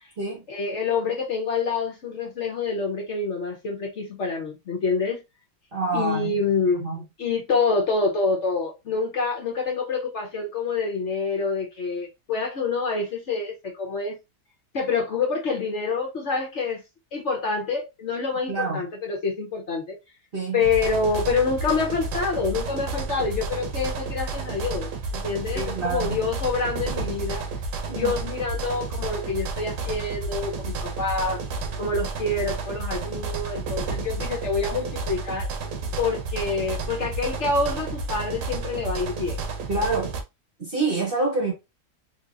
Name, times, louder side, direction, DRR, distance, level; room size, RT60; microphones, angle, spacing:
voice 1, 0.5-5.2 5.9-6.8 7.2-14.2 14.7-16.8 17.1-20.0 20.5-27.4 27.9-31.4 31.8-35.5 36.0-39.4, left 4 dB, 55° left, 0.9 m, -27 dB
voice 2, 5.7-6.4 6.7-7.0 18.5-18.8 20.3-20.7 25.5-26.2 27.9-28.2 39.7-40.2 40.6-41.5, right 3 dB, 45° right, 0.9 m, -27 dB
sound 1, 20.6-40.2, right 3 dB, 80° right, 1.3 m, -31 dB
3.7 x 2.9 x 2.4 m
omnidirectional pair, 1.7 m